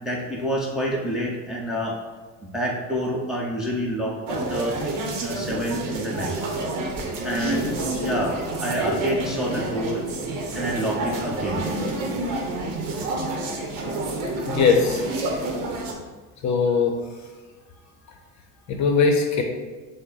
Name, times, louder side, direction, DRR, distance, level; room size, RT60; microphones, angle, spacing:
voice 1, 0.0-1.9 2.5-4.7 5.2-6.3 7.2-7.7 8.0-8.3 8.6-10.0 10.5-11.6, equal, ahead, -4 dB, 0.8 m, -27 dB
sound 1, 4.3-15.9, right 2 dB, 60° right, 0.9 m, -28 dB
voice 2, 14.4-15.0 16.4-16.9 18.7-19.4, left 5 dB, 50° left, 3 dB, 0.8 m, -20 dB
6.3 x 2.2 x 3.9 m, 1.3 s
cardioid pair, 120°, 38 cm